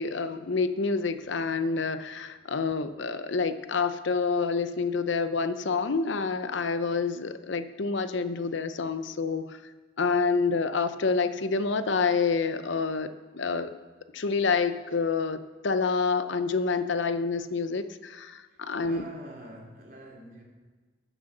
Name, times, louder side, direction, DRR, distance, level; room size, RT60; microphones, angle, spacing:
voice 1, 0.0-9.6 10.0-13.8 14.1-19.0, left 4 dB, 75° left, 11 dB, 0.6 m, -28 dB
voice 2, 18.5-20.4, right 1 dB, 45° right, -1 dB, 2.8 m, -45 dB
14.5 x 7.6 x 6.6 m, 1.4 s
head